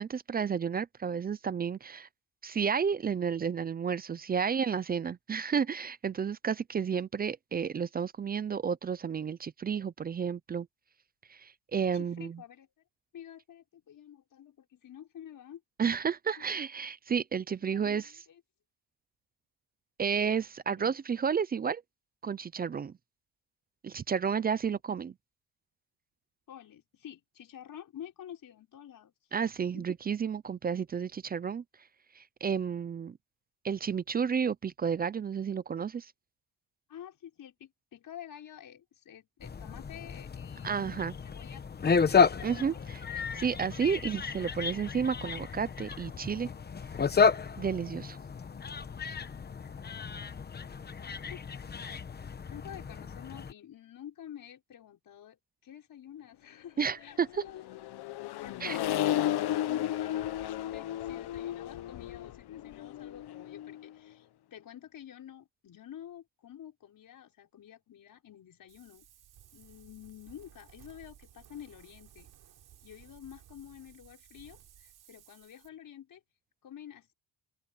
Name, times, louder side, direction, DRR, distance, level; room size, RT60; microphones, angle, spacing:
voice 1, 0.0-2.1 2.4-10.7 11.3-12.4 15.8-18.1 20.0-21.8 22.2-22.9 23.8-25.1 29.3-31.6 32.2-33.2 33.6-36.1 40.6-41.1 42.4-42.7 43.3-46.5 47.6-48.2 56.8-57.3 58.6-58.8, right 6 dB, 25° right, 0.3 m, -31 dB
voice 2, 11.9-12.7 13.1-15.6 16.4-16.5 17.6-18.4 20.7-20.9 26.5-29.1 29.6-29.8 36.9-42.8 51.3-51.6 52.5-57.7 58.4-69.1 69.5-72.3 72.8-76.2 76.6-77.1, left 10 dB, 50° left, 5.7 m, -49 dB
sound 1, 39.4-53.5, left 5 dB, 25° left, 1.0 m, -32 dB
Accelerating revving vroom, 57.2-63.9, left 12 dB, 65° left, 1.0 m, -34 dB
Wind, 68.7-75.7, right 11 dB, 60° right, 4.5 m, -57 dB
open air
cardioid pair, 160°, 41 cm